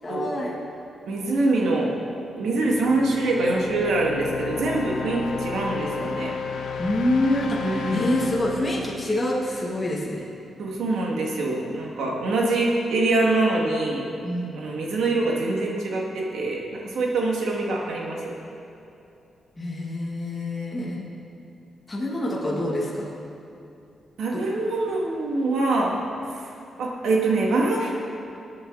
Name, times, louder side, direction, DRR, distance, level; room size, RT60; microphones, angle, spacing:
voice 1, 0.0-0.6 6.8-10.2 14.2-14.6 19.6-21.0 21.9-23.1 24.3-24.4, left 1 dB, 15° left, -5 dB, 1.8 m, -26 dB
voice 2, 1.1-1.9 2.4-6.4 7.6-8.1 10.6-14.0 14.5-18.3 24.2-26.0 26.4-26.5 26.8-27.9, right 2 dB, 85° right, -2 dB, 2.4 m, -24 dB
sound 1, 2.4-10.2, left 5 dB, 90° left, 1.0 m, -33 dB
22.0 x 8.6 x 4.2 m, 2.8 s
wide cardioid pair, 160°, 0 cm